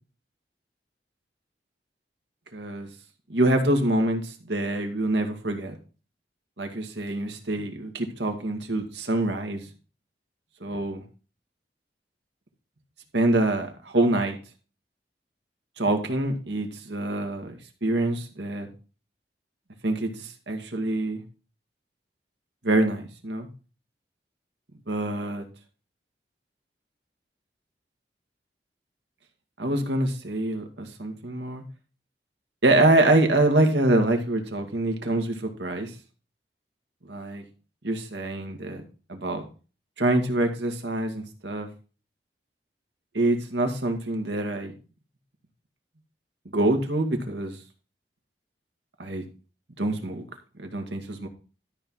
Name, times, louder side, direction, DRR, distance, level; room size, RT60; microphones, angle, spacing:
voice 1, 2.5-2.9 3.3-5.8 6.6-9.6 10.6-11.0 13.1-14.4 15.8-18.7 19.8-21.2 22.6-23.5 24.9-25.4 29.6-31.6 32.6-35.9 37.1-37.4 37.8-38.8 39.1-39.4 40.0-41.7 43.1-44.7 46.5-47.5 49.0-49.2 49.8-50.2 50.6-51.3, right 1 dB, 85° right, 4 dB, 2.1 m, -25 dB
13.0 x 5.6 x 4.7 m, 0.35 s
head